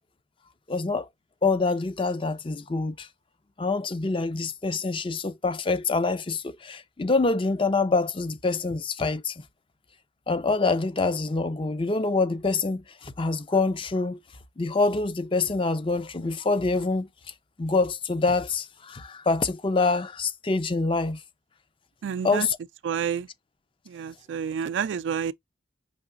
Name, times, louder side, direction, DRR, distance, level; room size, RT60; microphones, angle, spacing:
voice 1, 0.7-1.1 1.4-3.1 3.6-9.3 10.3-14.2 14.6-17.1 17.6-21.2 22.2-22.6, left 3 dB, 30° left, 0.4 m, -26 dB
voice 2, 22.0-22.5 22.8-23.3 23.9-25.3, right 7 dB, 85° right, 0.3 m, -29 dB
5.7 x 2.9 x 2.5 m
head